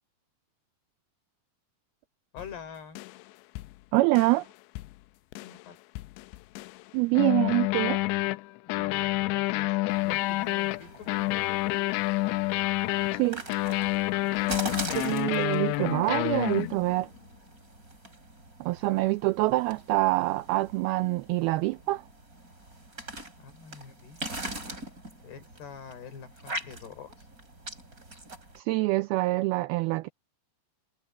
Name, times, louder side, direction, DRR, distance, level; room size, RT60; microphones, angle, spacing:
voice 1, 2.3-3.0 5.4-5.8 8.7-11.9 23.4-24.4 25.2-27.3, left 6 dB, 65° left, 6.0 m, -46 dB
sound 1, 2.4-2.5 3.0-3.2 3.6-3.7 4.2-4.4 4.8-4.9 5.3-5.6 6.0-6.8 7.2-17.0, left 20 dB, 90° left, 2.8 m, -29 dB
voice 2, 3.9-4.5 6.9-8.0 13.1-13.4 14.9-17.1 18.6-22.0 28.6-30.1, right 20 dB, 85° right, 2.2 m, -25 dB
sound 2, 9.9-28.6, right 2 dB, 20° right, 6.5 m, -42 dB
omnidirectional pair, 5.0 m